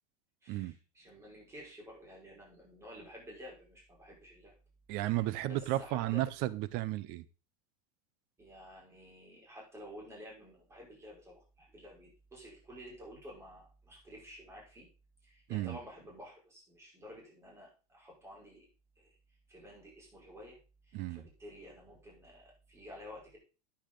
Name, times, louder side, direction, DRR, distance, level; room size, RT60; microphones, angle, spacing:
voice 1, 0.4-4.5 5.0-5.2 5.4-6.2 8.4-14.9 15.2-18.7 18.9-19.1 19.5-20.6 20.8-23.4, equal, 15° right, 5.0 m, -51 dB
voice 2, 4.9-7.2 15.5-15.8 20.9-21.2, right 16 dB, 50° right, 0.8 m, -33 dB
10.5 x 8.8 x 3.8 m
supercardioid pair, 135°, 20 cm